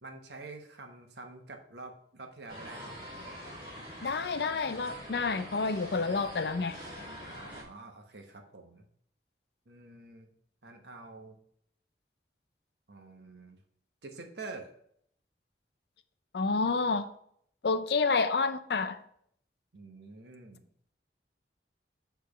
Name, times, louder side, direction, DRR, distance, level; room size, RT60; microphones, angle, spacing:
voice 1, 0.0-3.0 3.6-3.8 7.3-8.9 9.7-10.3 10.6-11.4 12.9-13.6 14.0-14.7 19.7-20.7, right 3 dB, 70° right, 1.0 m, -47 dB
sound 1, 2.5-7.6, equal, 30° right, 2.1 m, -45 dB
voice 2, 4.0-6.8 16.3-17.1 17.6-19.0, left 4 dB, 65° left, 0.5 m, -29 dB
6.8 x 3.4 x 5.1 m
head